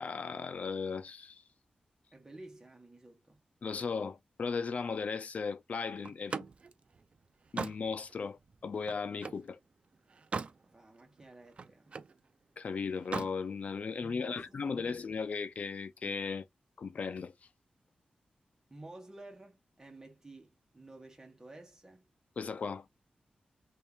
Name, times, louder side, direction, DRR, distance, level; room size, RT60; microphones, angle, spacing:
voice 1, 0.0-1.4 3.6-6.4 7.5-9.6 12.6-16.5 16.8-17.3 22.4-22.9, left 5 dB, 55° left, 0.4 m, -36 dB
voice 2, 2.1-3.4 10.6-11.9 14.0-15.0 18.7-22.1, right 2 dB, 20° right, 1.5 m, -52 dB
Slam, 6.0-9.5 9.9-10.6 11.0-12.2 12.9-13.4, right 4 dB, 45° right, 0.4 m, -40 dB
3.2 x 2.8 x 3.5 m
wide cardioid pair, 150°, 3 cm